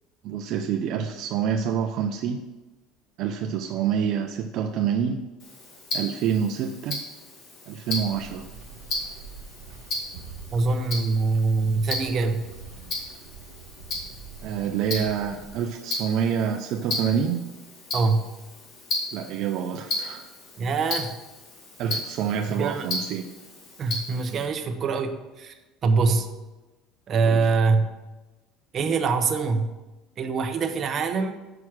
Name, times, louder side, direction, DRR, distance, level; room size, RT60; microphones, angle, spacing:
voice 1, 0.2-2.4 3.2-5.3 5.9-7.0 7.7-8.5 14.4-17.5 19.1-20.3 21.8-23.3 27.2-27.4, right 8 dB, 60° right, 5 dB, 0.5 m, -27 dB
Tick-tock, 5.4-24.5, left 2 dB, 50° left, 2.1 m, -35 dB
sound 1, 8.0-15.6, right 5 dB, 80° right, 0.8 m, -45 dB
voice 2, 10.5-12.4 17.9-18.3 20.6-21.2 22.5-22.9 23.8-25.5 25.8-26.3 27.1-27.9 28.7-29.7 30.2-31.3, right 4 dB, 35° right, 7 dB, 0.8 m, -24 dB
6.2 x 5.9 x 6.1 m, 1.1 s
cardioid pair, 130°, 0 cm